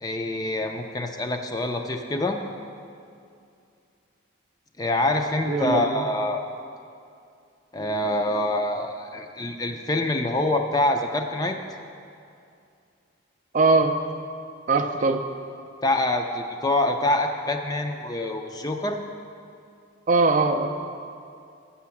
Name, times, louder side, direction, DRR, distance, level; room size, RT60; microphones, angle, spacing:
voice 1, 0.0-2.4 4.8-6.4 7.7-11.6 15.8-19.0, left 1 dB, 20° left, 4 dB, 0.4 m, -25 dB
voice 2, 5.4-6.0 13.5-14.0 14.7-15.3 20.1-20.7, right 3 dB, 40° right, 5 dB, 0.4 m, -21 dB
8.4 x 5.7 x 7.1 m, 2.5 s
head